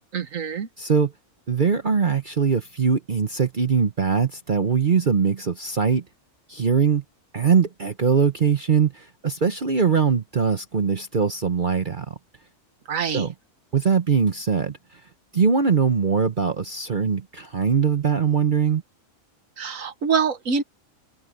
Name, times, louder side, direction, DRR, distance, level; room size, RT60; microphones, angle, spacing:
voice 1, 0.1-0.7 12.9-13.3 19.6-20.6, right 6 dB, 85° right, 1.6 m, -25 dB
voice 2, 0.8-1.1 1.5-6.0 6.5-7.0 7.3-12.1 13.1-13.3 13.7-14.8 15.3-18.8, right 6 dB, 40° right, 1.0 m, -21 dB
omnidirectional pair, 1.4 m